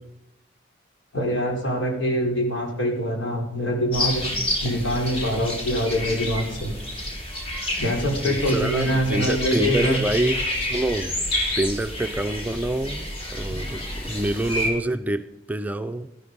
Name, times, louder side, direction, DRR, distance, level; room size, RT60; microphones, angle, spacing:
voice 1, 1.1-4.3 4.6-6.7 7.8-10.0, equal, 90° left, 0 dB, 4.4 m, -24 dB
sound 1, 3.9-14.7, left 1 dB, 30° left, 3.4 m, -29 dB
voice 2, 8.3-11.2 11.6-16.2, right 1 dB, 10° right, 8 dB, 0.5 m, -27 dB
17.0 x 12.0 x 5.4 m, 0.86 s
head